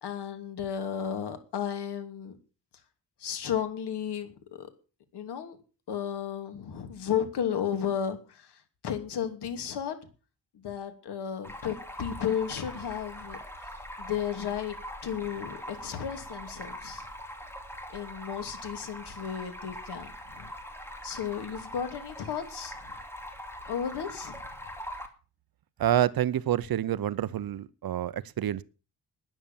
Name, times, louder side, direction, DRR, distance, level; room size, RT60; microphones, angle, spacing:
voice 1, 0.0-2.3 3.2-4.7 5.1-5.6 5.9-10.0 10.5-13.7 14.0-14.8 15.0-17.1 17.9-20.5 21.0-22.8 23.7-24.4, left 8 dB, 90° left, 2.9 m, -34 dB
Stream, 11.4-25.1, equal, 5° left, 2.5 m, -42 dB
voice 2, 25.8-28.6, right 11 dB, 65° right, 0.8 m, -28 dB
12.5 x 10.0 x 7.4 m
wide cardioid pair, 145°, 39 cm